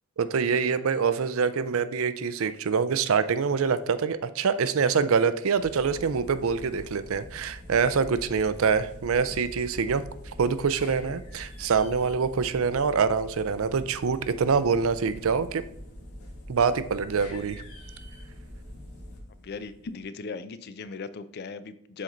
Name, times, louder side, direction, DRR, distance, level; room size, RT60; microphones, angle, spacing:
voice 1, 0.2-10.0 10.4-15.6 16.5-17.6, right 5 dB, 70° right, 14 dB, 0.4 m, -25 dB
sound 1, 5.6-20.0, left 1 dB, 80° left, 1.7 m, -44 dB
voice 2, 19.4-22.0, left 4 dB, 50° left, 13 dB, 0.4 m, -38 dB
7.5 x 4.0 x 3.8 m, 0.77 s
head